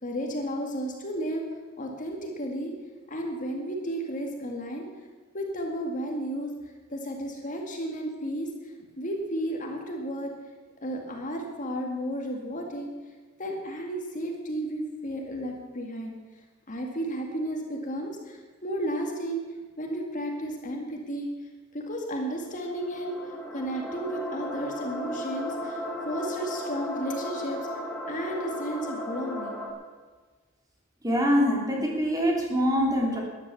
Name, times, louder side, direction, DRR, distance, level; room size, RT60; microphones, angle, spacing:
voice 1, 0.0-1.4 1.8-2.7 3.1-4.9 5.3-6.5 6.9-10.3 10.8-12.9 13.4-16.1 16.7-19.4 19.8-21.3 21.7-23.1 23.5-29.6, equal, 40° left, 1 dB, 2.1 m, -33 dB
sound 1, 22.4-29.7, left 1 dB, 5° left, 2.5 m, -35 dB
voice 2, 31.0-33.2, equal, 20° right, -1 dB, 3.2 m, -24 dB
13.5 x 10.5 x 7.1 m, 1.4 s
head